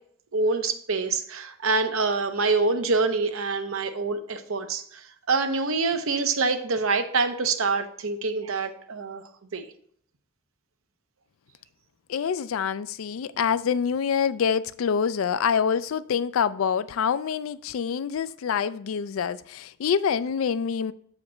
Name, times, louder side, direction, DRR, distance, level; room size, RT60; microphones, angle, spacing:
voice 1, 0.3-9.2 9.5-9.7, right 3 dB, 80° right, 0.8 m, -26 dB
voice 2, 12.1-20.9, left 7 dB, 80° left, 0.4 m, -26 dB
7.2 x 5.0 x 4.3 m
head